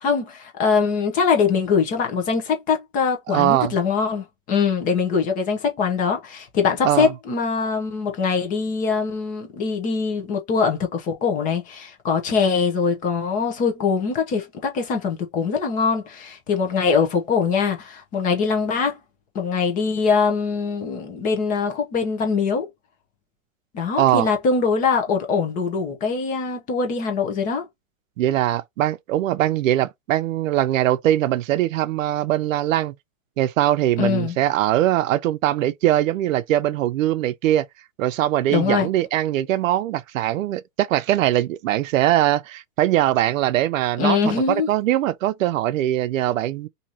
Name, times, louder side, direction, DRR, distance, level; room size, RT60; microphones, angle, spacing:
voice 1, 0.0-19.0 19.3-22.7 23.7-27.6 34.0-34.3 38.5-38.9 44.0-44.7, left 5 dB, 20° left, 0.8 m, -22 dB
voice 2, 3.3-3.7 6.8-7.1 24.0-24.3 28.2-32.9 33.4-37.7 38.0-44.2 44.5-46.7, right 13 dB, 90° right, 0.5 m, -21 dB
3.0 x 2.8 x 3.9 m
supercardioid pair, 160°, 39 cm